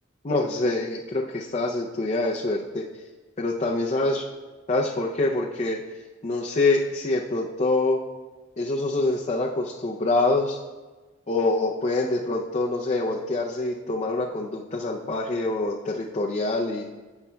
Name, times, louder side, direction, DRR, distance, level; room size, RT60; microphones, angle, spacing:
voice 1, 0.2-2.8 3.4-4.2 4.7-5.8 6.2-8.0 8.6-10.6 11.3-16.8, left 2 dB, 35° left, -2 dB, 0.5 m, -25 dB
16.5 x 5.6 x 2.3 m, 1.3 s
head